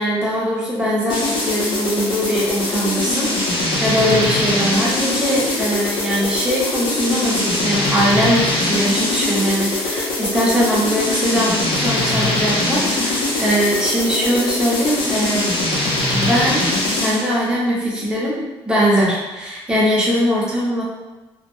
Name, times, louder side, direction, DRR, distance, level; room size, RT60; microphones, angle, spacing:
voice 1, 0.0-15.6 16.1-16.7 16.9-18.4 18.6-20.8, equal, 10° right, -6 dB, 0.8 m, -21 dB
sound 1, 1.1-17.3, left 2 dB, 65° left, 0.6 m, -22 dB
2.5 x 2.1 x 3.0 m, 1.1 s
cardioid pair, 115°, 10 cm